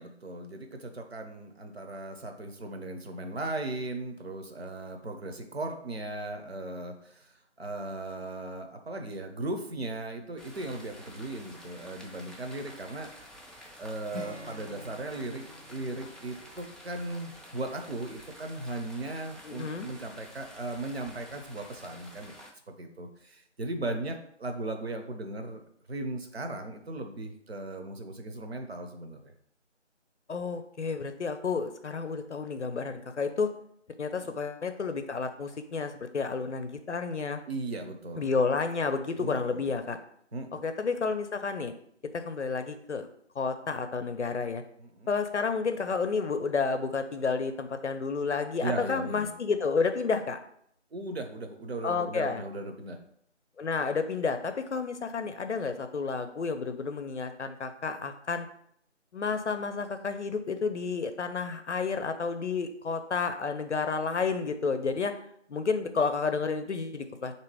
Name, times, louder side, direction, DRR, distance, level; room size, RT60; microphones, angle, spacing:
voice 1, 0.0-13.1 13.8-15.4 15.7-22.4 22.7-25.6 25.9-29.3 34.2-34.4 37.5-38.3 39.2-39.6 40.3-40.6 44.8-45.1 48.6-49.3 50.9-53.0, right 2 dB, 60° right, 5 dB, 0.7 m, -37 dB
sound 1, 10.4-22.5, equal, ahead, 0.3 m, -50 dB
Acoustic guitar / Strum, 14.1-17.6, left 2 dB, 80° right, 1.2 m, -47 dB
voice 2, 19.4-19.9 30.3-33.5 34.0-37.4 38.2-40.0 40.6-41.7 42.1-43.1 43.4-44.6 45.1-50.4 51.8-52.4 53.6-58.5 59.1-65.1 65.5-67.3, left 4 dB, 70° left, 8 dB, 0.5 m, -31 dB
3.4 x 2.8 x 4.7 m, 0.68 s
figure-of-eight pair, 170°, 36 cm